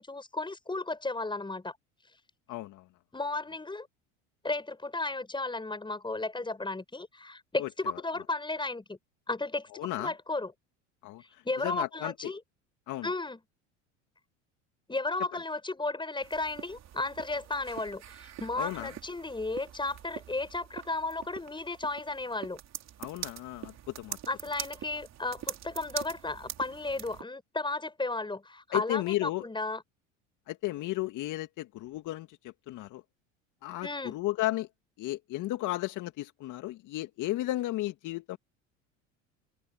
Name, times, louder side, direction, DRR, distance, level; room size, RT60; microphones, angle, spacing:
voice 1, 0.0-1.8 3.1-3.9 4.4-9.0 9.3-10.5 11.4-12.4 13.0-13.4 14.9-22.6 24.3-29.8 33.8-34.1, left 2 dB, 15° left, 7.0 m, -34 dB
voice 2, 2.5-2.9 7.6-8.0 9.7-10.1 11.0-12.3 12.9-13.1 18.6-18.9 23.0-24.2 28.7-29.4 30.5-33.0 33.6-34.7 35.0-38.4, left 16 dB, 55° left, 2.2 m, -34 dB
sound 1, 16.2-27.2, right 11 dB, 45° right, 3.8 m, -44 dB
hypercardioid pair, 80°, 37 cm